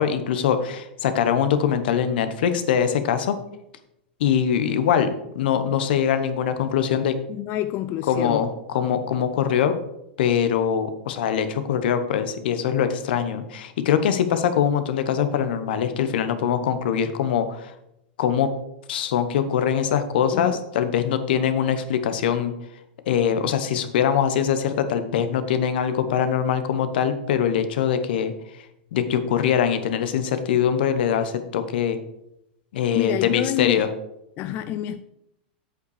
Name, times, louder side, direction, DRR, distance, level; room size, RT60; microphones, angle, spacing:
voice 1, 0.0-3.4 4.2-7.1 8.1-9.8 10.2-17.7 18.2-18.5 18.9-22.5 23.1-28.3 28.9-32.0 32.7-33.9, left 8 dB, 70° left, 1.0 m, -23 dB
voice 2, 7.3-8.5 20.3-20.6 32.9-33.9 34.4-35.0, left 13 dB, 35° left, 0.3 m, -27 dB
7.9 x 5.4 x 4.9 m
supercardioid pair, 140°, 5 cm